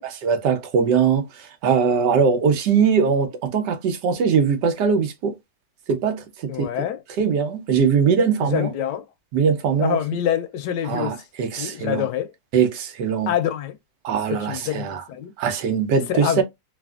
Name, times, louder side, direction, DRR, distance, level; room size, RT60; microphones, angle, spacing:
voice 1, 0.0-5.3 5.9-6.5 7.2-8.7 9.3-10.0 10.9-12.1 12.5-13.3 14.0-15.0 15.4-16.4, right 6 dB, 85° right, 1.4 m, -21 dB
voice 2, 6.5-7.0 8.4-9.1 9.8-11.2 11.6-12.3 13.3-13.8 14.3-15.3 16.1-16.4, left 10 dB, 90° left, 1.2 m, -26 dB
3.3 x 2.4 x 2.3 m
omnidirectional pair, 1.8 m